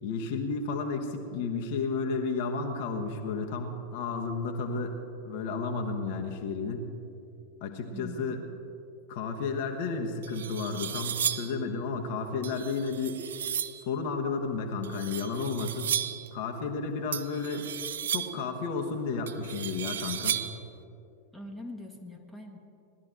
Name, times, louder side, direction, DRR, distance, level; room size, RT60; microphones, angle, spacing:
voice 1, 0.0-6.9 7.6-8.4 9.1-13.2 13.8-16.0 16.3-17.7 18.1-20.5, left 4 dB, 50° left, 3 dB, 1.2 m, -32 dB
voice 2, 7.9-8.4 21.3-22.6, left 1 dB, ahead, 1 dB, 1.4 m, -43 dB
sound 1, 9.7-9.8 10.2-11.6 12.4-13.8 14.8-16.3 17.1-18.5 19.3-20.7, right 9 dB, 65° right, 0.5 m, -34 dB
18.5 x 12.0 x 3.9 m, 2.7 s
figure-of-eight pair, 90°, 0 cm